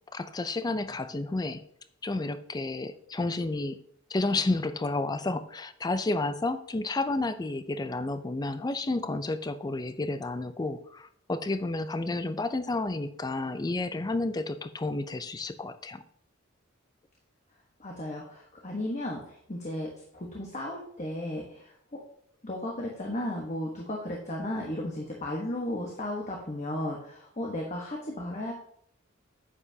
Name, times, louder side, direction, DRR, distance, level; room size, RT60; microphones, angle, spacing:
voice 1, 0.1-1.6 2.0-3.8 4.1-16.0, left 2 dB, 20° left, 12 dB, 0.4 m, -31 dB
voice 2, 17.8-22.0 22.4-28.5, left 1 dB, 35° left, -1 dB, 1.1 m, -35 dB
9.7 x 7.8 x 2.8 m, 0.67 s
head